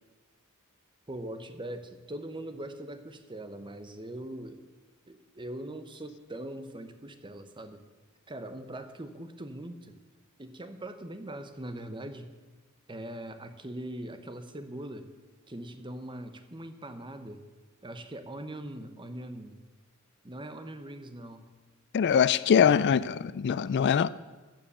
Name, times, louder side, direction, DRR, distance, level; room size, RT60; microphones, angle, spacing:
voice 1, 1.1-4.7 5.1-7.8 8.3-9.9 10.4-12.3 12.9-15.1 15.5-17.4 17.8-19.6 20.2-21.5 22.5-23.0, right 1 dB, 20° right, 9 dB, 1.0 m, -41 dB
voice 2, 21.9-24.1, left 7 dB, 55° left, 17 dB, 0.3 m, -23 dB
14.0 x 7.7 x 6.8 m, 1.2 s
head